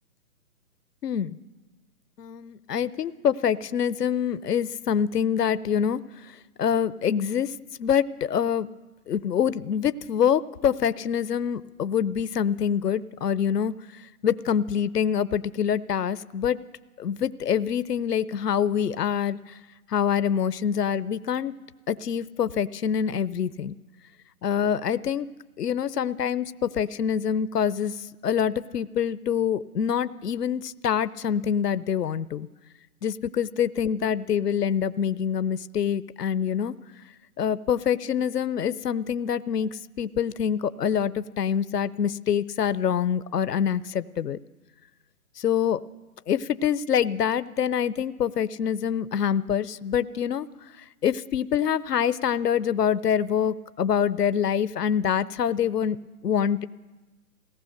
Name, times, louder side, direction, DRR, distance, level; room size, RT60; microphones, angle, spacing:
voice 1, 1.0-1.4 2.2-6.0 6.6-7.5 7.8-8.7 9.1-13.7 14.2-16.6 17.0-19.4 19.9-21.5 21.9-23.7 24.4-25.3 25.6-32.5 33.0-36.7 37.4-44.4 45.4-45.8 46.3-50.5 51.0-56.0 56.2-56.7, left 8 dB, 85° left, 15 dB, 0.8 m, -25 dB
23.0 x 18.0 x 6.5 m, 1.2 s
hypercardioid pair, 170°, 46 cm